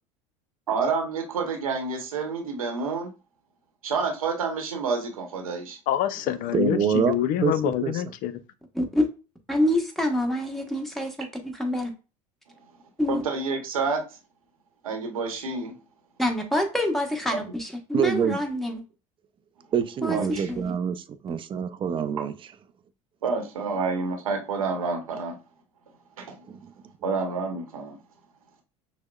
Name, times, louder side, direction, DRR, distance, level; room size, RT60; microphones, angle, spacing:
voice 1, 0.7-3.1 3.8-5.8 13.1-14.0 14.8-15.7 17.3-17.4 20.1-20.5 23.2-25.4 26.2-26.4 27.0-28.0, right 4 dB, 85° right, 0.9 m, -28 dB
voice 2, 5.9-8.4, left 11 dB, 50° left, 0.5 m, -26 dB
voice 3, 6.5-7.5 7.8-8.0 17.9-18.4 19.7-22.3 26.5-26.7, right 7 dB, 30° right, 0.4 m, -26 dB
voice 4, 9.5-11.2 11.4-11.9 13.0-13.2 16.2-18.8 20.0-20.2 20.5-20.7, left 1 dB, ahead, 1.1 m, -26 dB
6.0 x 2.1 x 2.2 m
hypercardioid pair, 75°, 17 cm